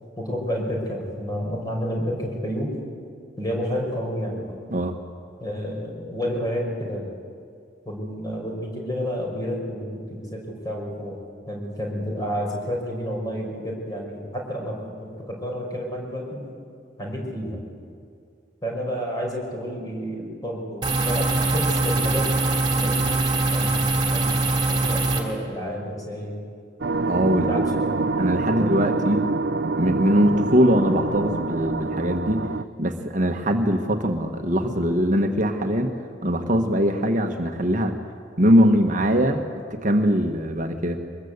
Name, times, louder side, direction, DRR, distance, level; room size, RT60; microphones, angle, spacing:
voice 1, 0.2-2.8 3.4-4.5 5.4-7.1 7.9-11.2 11.5-16.5 17.0-17.6 18.6-22.3 22.7-24.4 24.7-26.4 27.4-28.1 28.5-28.7, equal, 20° left, -1 dB, 5.5 m, -30 dB
sound 1, 20.8-25.2, right 2 dB, 25° right, 3.0 m, -22 dB
sound 2, 26.8-32.6, right 3 dB, 65° right, 0.6 m, -26 dB
voice 2, 27.1-27.6 28.2-29.3 29.7-32.5 32.8-35.9 36.2-38.0 38.4-39.4 39.7-41.0, equal, 45° right, 4 dB, 1.4 m, -21 dB
23.5 x 21.0 x 8.1 m, 2.2 s
head